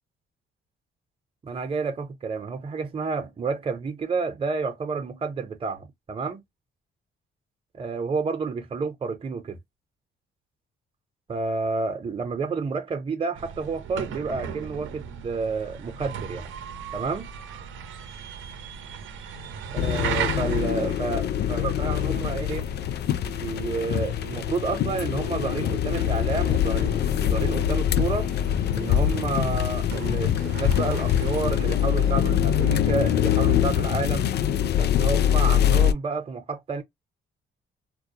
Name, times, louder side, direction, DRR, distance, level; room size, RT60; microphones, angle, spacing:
voice 1, 1.4-6.4 7.7-9.6 11.3-16.5 16.9-17.3 19.7-22.7 23.3-28.3 28.7-34.3 34.8-36.8, right 4 dB, 30° right, 0.7 m, -30 dB
sound 1, 13.3-32.7, right 7 dB, 80° right, 0.7 m, -38 dB
sound 2, 19.8-35.9, left 10 dB, 60° left, 0.4 m, -24 dB
2.2 x 2.0 x 2.8 m
cardioid pair, 90°, 20 cm